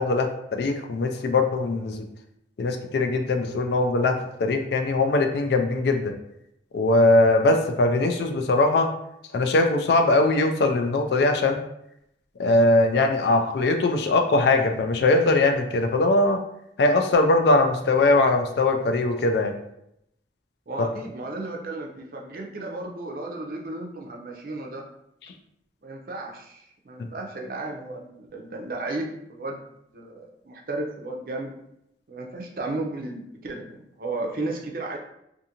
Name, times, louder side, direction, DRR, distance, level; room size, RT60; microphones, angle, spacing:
voice 1, 0.0-2.1 2.6-6.1 6.7-8.9 9.3-11.6 12.4-16.4 16.8-19.6 27.0-27.1, left 2 dB, 70° left, 5 dB, 0.4 m, -21 dB
voice 2, 20.7-24.9 25.8-29.6 29.9-31.5 32.1-35.0, right 2 dB, 50° right, 1 dB, 0.5 m, -34 dB
2.6 x 2.5 x 2.8 m, 0.78 s
head